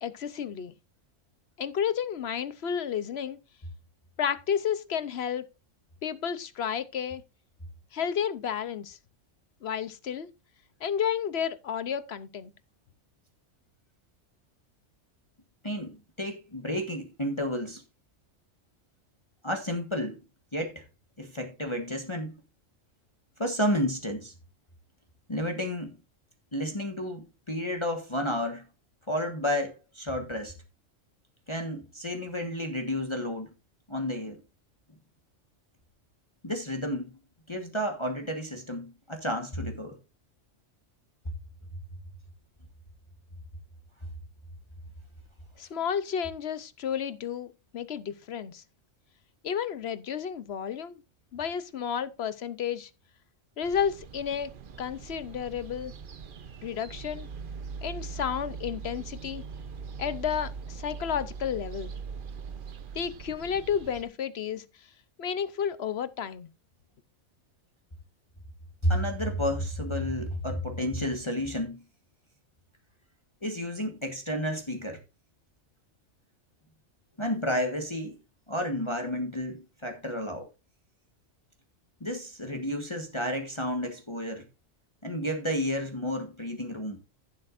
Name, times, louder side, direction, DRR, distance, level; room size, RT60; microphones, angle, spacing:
voice 1, 0.0-0.7 1.6-3.4 4.2-5.5 6.0-7.2 7.9-9.0 9.6-10.3 10.8-12.5 45.6-48.6 49.4-51.0 51.3-52.9 53.6-54.5 54.8-55.9 56.6-57.3 57.8-59.4 60.0-61.9 62.9-64.6 65.2-66.5, left 8 dB, 60° left, 0.9 m, -31 dB
voice 2, 15.6-17.8 19.4-20.2 20.5-20.8 21.2-22.3 23.4-24.3 25.3-25.9 26.5-28.6 29.1-30.5 31.5-33.5 33.9-34.4 36.4-37.1 37.5-40.0 68.8-71.8 73.4-75.0 77.2-78.2 78.5-80.5 82.0-84.4 85.0-87.0, equal, 25° left, 1.4 m, -31 dB
sound 1, 53.6-64.0, right 5 dB, 50° right, 0.9 m, -41 dB
14.5 x 7.6 x 2.5 m
omnidirectional pair, 1.3 m